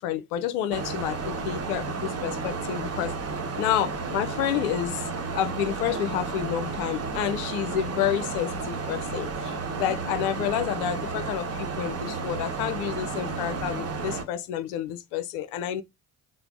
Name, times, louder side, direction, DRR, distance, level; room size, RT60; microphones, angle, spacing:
voice 1, 0.0-3.1 3.6-15.8, left 10 dB, 70° left, 0.5 m, -29 dB
sound 1, 0.7-14.2, right 4 dB, 35° right, 0.8 m, -32 dB
3.3 x 2.0 x 3.7 m
figure-of-eight pair, 45°, 44 cm